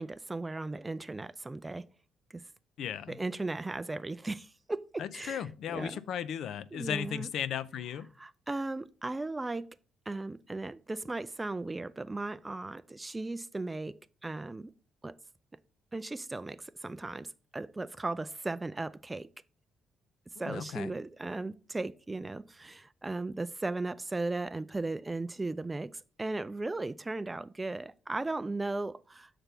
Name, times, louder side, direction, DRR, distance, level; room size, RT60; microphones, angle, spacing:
voice 1, 0.0-1.9 2.3-2.5 3.1-6.0 6.7-7.3 8.2-9.8 10.1-14.7 15.0-15.1 15.9-19.3 20.4-29.3, right 2 dB, 15° right, 0.3 m, -37 dB
voice 2, 2.8-3.2 5.0-8.1 20.4-20.9, left 9 dB, 70° left, 0.5 m, -36 dB
6.8 x 3.4 x 5.9 m
cardioid pair, 120°, 0 cm